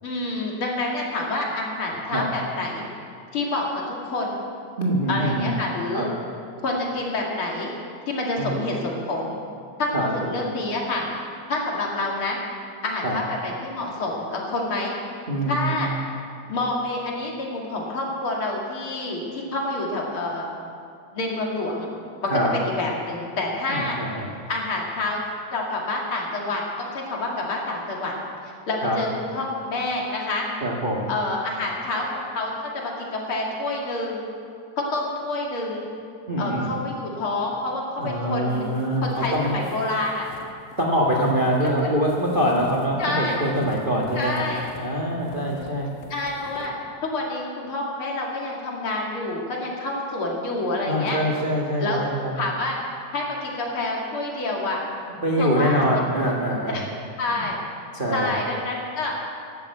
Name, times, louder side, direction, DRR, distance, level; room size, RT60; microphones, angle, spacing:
voice 1, 0.0-2.8 3.3-4.4 5.1-6.1 6.6-7.7 8.1-9.4 9.8-11.0 11.5-12.4 12.8-14.9 15.5-15.9 16.5-20.4 21.1-21.9 22.2-24.0 24.5-25.2 25.5-28.1 28.4-30.5 31.1-34.3 34.8-35.8 36.4-38.6 39.0-40.3 41.8-41.9 43.0-43.4 44.2-44.6 46.1-46.7 47.0-51.2 51.8-52.1 52.4-52.8 53.1-54.8 55.4-56.3 56.7-56.9 57.2-57.6 58.1-59.1, left 2 dB, 45° left, -2 dB, 2.9 m, -28 dB
voice 2, 4.8-5.5 5.9-6.1 8.4-8.5 9.9-10.1 13.0-13.2 15.3-15.9 22.3-22.5 23.7-24.3 28.8-29.0 30.6-31.1 36.3-36.7 38.0-39.5 40.8-44.5 44.8-45.9 50.9-52.3 55.2-56.8 57.3-57.4 57.9-58.3, equal, 85° right, -2 dB, 0.4 m, -24 dB
sound 1, 38.5-44.9 45.2-46.7, left 5 dB, 85° left, 2.8 m, -44 dB
12.5 x 11.5 x 8.1 m, 2.3 s
omnidirectional pair, 3.6 m